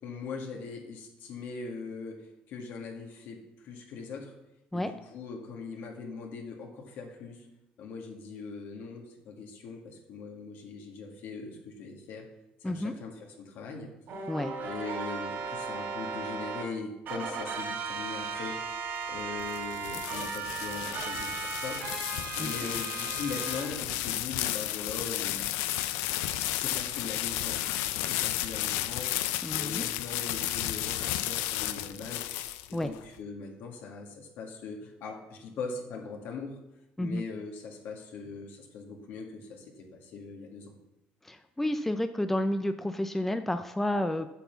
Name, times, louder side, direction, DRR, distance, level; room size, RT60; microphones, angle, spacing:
voice 1, 0.0-4.3 4.7-7.5 7.8-12.3 12.6-13.9 14.6-18.6 19.1-21.8 22.4-25.5 26.5-27.6 27.9-29.1 29.5-32.3 32.7-36.6 37.0-40.7, left 4 dB, 70° left, 1 dB, 2.2 m, -41 dB
voice 2, 12.6-12.9 14.3-14.5 22.4-22.5 29.4-29.9 32.7-32.9 37.0-37.2 41.2-44.3, left 1 dB, 5° left, 8 dB, 0.5 m, -30 dB
sound 1, 14.1-16.6 17.1-23.6, right 5 dB, 60° right, 3.1 m, -36 dB
sound 2, 19.2-33.0, left 14 dB, 90° left, 0.5 m, -33 dB
8.2 x 6.0 x 6.9 m, 0.90 s
cardioid pair, 110°, 4 cm